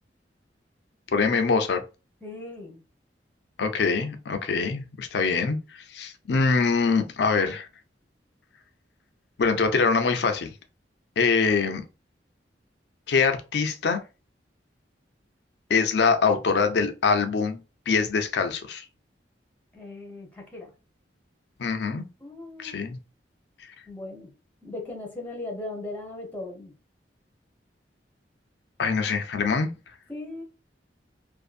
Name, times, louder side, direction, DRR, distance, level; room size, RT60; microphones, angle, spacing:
voice 1, 1.1-1.8 3.6-7.7 9.4-10.5 11.2-11.8 13.1-14.0 15.7-18.9 21.6-22.1 22.6-23.0 28.8-29.7, left 5 dB, 65° left, 0.5 m, -24 dB
voice 2, 2.2-2.8 19.7-20.7 22.2-22.8 23.9-24.3 24.6-26.8 30.1-30.4, left 2 dB, 10° left, 0.7 m, -38 dB
2.6 x 2.5 x 2.4 m
head